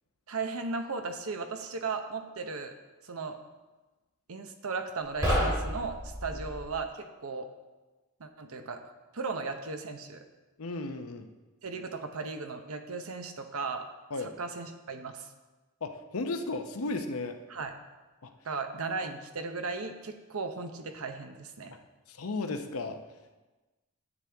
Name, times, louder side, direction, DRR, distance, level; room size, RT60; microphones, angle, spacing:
voice 1, 0.3-2.7 3.0-3.4 4.3-7.5 8.2-8.8 9.1-10.2 11.6-13.9 14.2-15.3 17.5-17.8 18.4-21.8, right 4 dB, 75° right, 7 dB, 0.8 m, -36 dB
sound 1, 5.0-6.7, equal, 15° right, 2.4 m, -30 dB
voice 2, 10.6-11.3 14.1-14.3 15.8-17.4 18.2-18.3 22.1-23.0, left 3 dB, 75° left, 6 dB, 0.8 m, -34 dB
9.7 x 8.1 x 3.5 m, 1.2 s
head